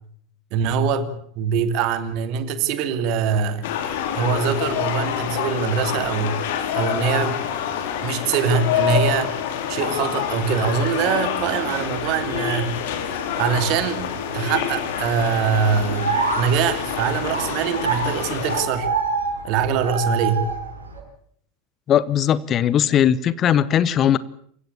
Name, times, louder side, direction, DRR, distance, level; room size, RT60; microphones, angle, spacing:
voice 1, 0.5-1.1 1.4-3.7 4.1-6.4 6.7-7.4 8.0-9.3 9.7-12.8 13.4-18.9 19.4-20.5, right 6 dB, 45° right, 2.8 m, -23 dB
sound 1, 3.6-18.6, left 9 dB, 55° left, 3.3 m, -27 dB
sound 2, 10.2-21.0, right 4 dB, 85° right, 7.2 m, -30 dB
voice 2, 21.9-24.2, left 10 dB, 30° left, 0.9 m, -19 dB
28.0 x 16.0 x 8.5 m
figure-of-eight pair, 85°, 0 cm